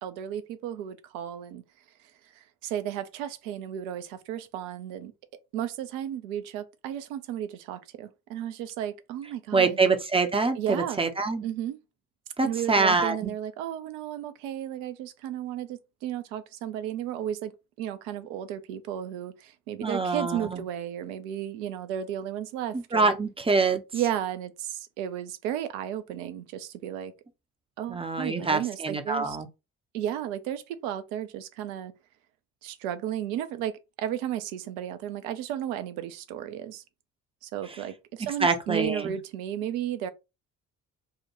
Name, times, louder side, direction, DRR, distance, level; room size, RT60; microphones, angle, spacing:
voice 1, 0.0-1.6 2.4-5.1 5.5-9.8 10.6-11.0 11.4-11.8 12.4-17.5 17.8-23.2 23.9-27.1 27.8-29.4 29.9-31.9 32.6-36.8 37.4-40.1, right 10 dB, 65° right, 0.6 m, -34 dB
voice 2, 9.5-11.4 12.4-13.3 19.8-20.6 22.7-23.8 27.9-29.5 37.7-37.8 38.2-39.2, right 4 dB, 15° right, 0.6 m, -25 dB
4.6 x 2.2 x 2.9 m
figure-of-eight pair, 45°, 44 cm